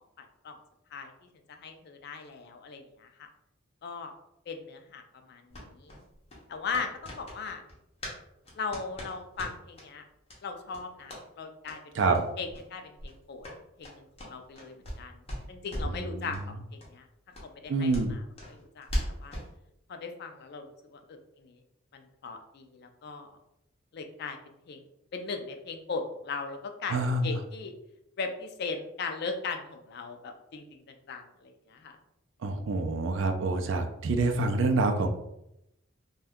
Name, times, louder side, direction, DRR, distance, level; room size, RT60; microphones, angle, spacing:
voice 1, 0.2-0.6 0.9-1.1 1.5-3.3 3.8-4.1 4.5-5.9 6.5-7.6 8.6-10.0 10.4-13.5 13.8-15.2 15.5-17.1 17.4-18.2 18.5-18.9 19.2-19.4 19.9-21.6 21.9-23.4 23.9-24.8 25.1-27.7 28.2-32.0, left 4 dB, 55° left, 5 dB, 0.4 m, -39 dB
sound 1, 5.5-8.2 8.4-9.9 10.3-10.4 10.7-11.2 11.6-11.8 12.1-12.2 12.5-12.7 13.0-15.0 15.3-16.0 16.3-16.5 16.8-16.9 17.3-19.5, equal, 30° left, 0.8 m, -38 dB
voice 2, 17.7-18.1 26.9-27.3 32.4-35.1, right 3 dB, 65° right, 5 dB, 0.4 m, -26 dB
2.6 x 2.2 x 3.5 m, 0.82 s
head